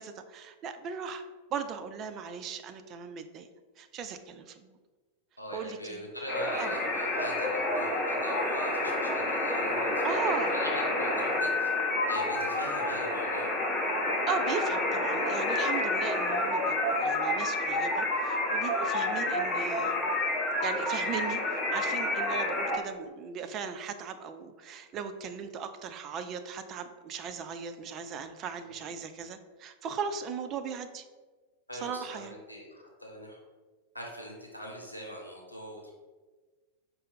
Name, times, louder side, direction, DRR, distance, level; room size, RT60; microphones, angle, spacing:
voice 1, 0.0-3.5 3.8-4.8 5.5-6.0 6.5-6.7 10.0-10.6 14.3-20.0 20.6-31.0 31.7-32.3, right 6 dB, 35° right, 8 dB, 0.3 m, -38 dB
voice 2, 5.4-10.2 10.5-11.7 12.1-13.5 28.6-28.8 31.7-33.4 33.9-35.9, equal, 85° left, -1 dB, 0.7 m, -42 dB
sound 1, 6.3-22.8, left 2 dB, 25° left, 0.7 m, -29 dB
5.0 x 2.0 x 4.1 m, 1.3 s
figure-of-eight pair, 90°, 0 cm